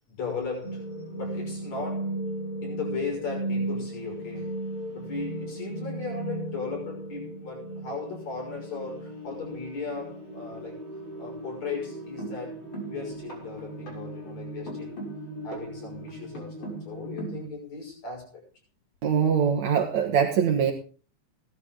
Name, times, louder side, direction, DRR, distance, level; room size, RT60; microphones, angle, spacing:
voice 1, 0.1-0.9 1.2-2.2 2.6-4.5 4.9-10.8 11.2-15.1 15.4-18.4, left 4 dB, 70° left, 0 dB, 7.4 m, -37 dB
sound 1, 0.6-17.5, right 2 dB, 40° left, 7.3 m, -36 dB
voice 2, 19.0-20.7, right 7 dB, 70° right, 2 dB, 2.9 m, -23 dB
18.0 x 12.0 x 3.8 m, 0.39 s
omnidirectional pair, 3.3 m